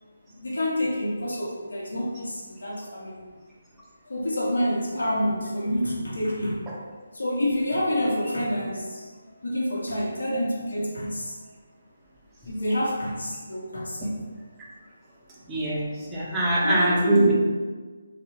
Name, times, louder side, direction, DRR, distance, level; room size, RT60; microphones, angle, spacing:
voice 1, 0.4-3.2 4.1-6.6 7.1-9.1 9.4-11.4 12.4-14.2 16.6-17.3, left 1 dB, 75° left, -5 dB, 0.6 m, -28 dB
voice 2, 15.5-17.3, right 2 dB, 10° right, -6 dB, 0.5 m, -23 dB
2.8 x 2.0 x 2.7 m, 1.4 s
figure-of-eight pair, 155°, 0 cm